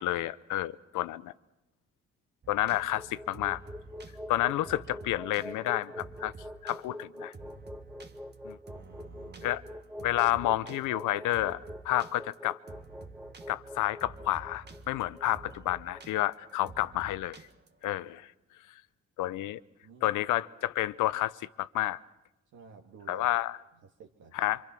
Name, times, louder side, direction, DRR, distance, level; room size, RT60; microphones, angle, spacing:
voice 1, 0.0-1.3 2.5-3.6 4.3-6.3 6.6-7.3 8.4-8.6 9.4-9.6 10.0-11.6 11.8-12.6 13.5-17.4 17.8-18.3 19.2-19.6 20.0-22.0 23.1-23.6 24.3-24.6, left 15 dB, 85° left, 16 dB, 0.8 m, -30 dB
sound 1, 2.4-17.9, right 3 dB, 35° right, 1.6 m, -50 dB
sound 2, 2.7-16.8, left 1 dB, 5° right, 1.3 m, -45 dB
voice 2, 8.7-9.6 19.8-20.2 22.5-23.3 23.7-24.3, right 5 dB, 85° right, 0 dB, 2.1 m, -52 dB
26.0 x 25.5 x 6.1 m, 0.95 s
cardioid pair, 90°, 30 cm